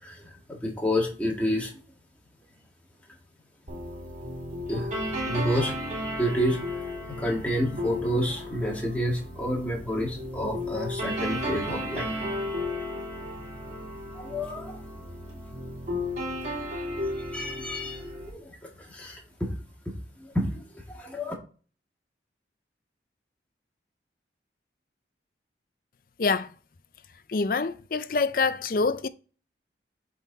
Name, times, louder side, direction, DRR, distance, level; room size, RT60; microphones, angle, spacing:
voice 1, 0.0-1.7 4.7-4.9 5.3-5.7 6.2-12.1 14.1-14.8 17.3-19.5 20.2-20.6 20.9-21.3, equal, 10° left, 1.9 m, -29 dB
sound 1, 3.7-18.3, left 1 dB, 45° right, 3.0 m, -34 dB
voice 2, 27.3-29.1, left 4 dB, 50° left, 0.5 m, -25 dB
8.2 x 4.2 x 4.0 m
head